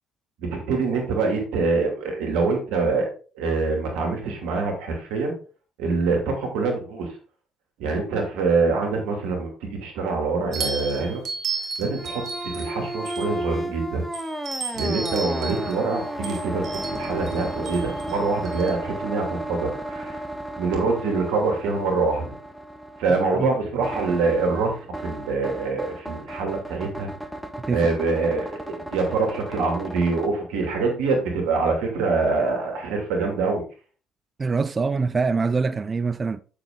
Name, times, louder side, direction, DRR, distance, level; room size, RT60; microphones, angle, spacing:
voice 1, 0.4-5.3 5.8-7.1 7.8-11.2 11.8-14.0 14.7-20.2 20.6-22.3 23.0-27.1 27.7-33.6, right 4 dB, 75° right, 2.8 m, -25 dB
sound 1, 10.5-13.6 14.1-18.7, right 4 dB, 50° right, 2.4 m, -34 dB
sound 2, 12.0-30.3, right 1 dB, ahead, 1.5 m, -34 dB
voice 2, 34.4-36.4, right 4 dB, 35° right, 0.6 m, -24 dB
8.1 x 6.8 x 3.8 m
hypercardioid pair, 55°, 0 cm